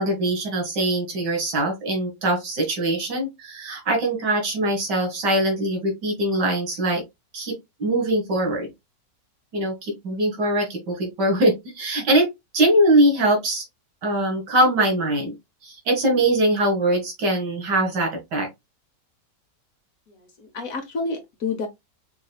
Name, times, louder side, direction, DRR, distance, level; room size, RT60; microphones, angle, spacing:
voice 1, 0.0-7.0 7.3-8.7 9.5-12.3 12.5-13.6 14.0-15.3 15.6-18.5, right 1 dB, 75° right, 2.5 m, -22 dB
voice 2, 20.1-21.7, left 4 dB, 55° left, 1.3 m, -30 dB
5.7 x 3.0 x 2.3 m
omnidirectional pair, 1.9 m